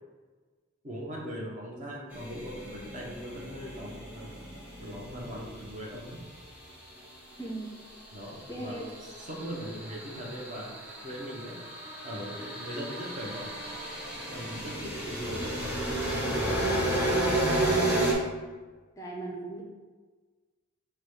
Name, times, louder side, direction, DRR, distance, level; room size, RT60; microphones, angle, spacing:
voice 1, 0.8-4.3 4.8-6.2 8.1-8.9 9.3-10.7 11.0-11.7 12.0-13.5 14.3-15.6, equal, 40° right, -2 dB, 0.9 m, -39 dB
sound 1, 2.1-6.5 8.0-18.1, right 1 dB, 10° right, 0.8 m, -32 dB
voice 2, 7.4-8.0 8.5-8.9 16.5-17.3 19.0-19.6, right 2 dB, 15° left, -1 dB, 0.5 m, -38 dB
4.7 x 2.3 x 4.7 m, 1.3 s
head